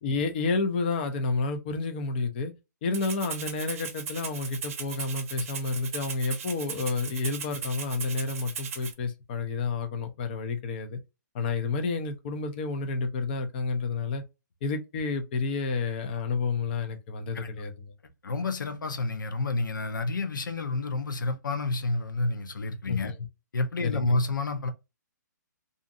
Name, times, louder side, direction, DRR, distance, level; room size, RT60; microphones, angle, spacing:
voice 1, 0.0-2.5 2.8-11.0 11.3-14.2 14.6-17.8 22.9-23.3 23.8-24.2, left 4 dB, 30° left, 0.5 m, -30 dB
Rattle (instrument), 2.9-8.9, right 6 dB, 45° right, 0.7 m, -38 dB
voice 2, 17.3-17.7 18.2-23.1 23.5-24.7, left 3 dB, 85° left, 0.7 m, -29 dB
2.6 x 2.5 x 2.4 m
hypercardioid pair, 155°, 10 cm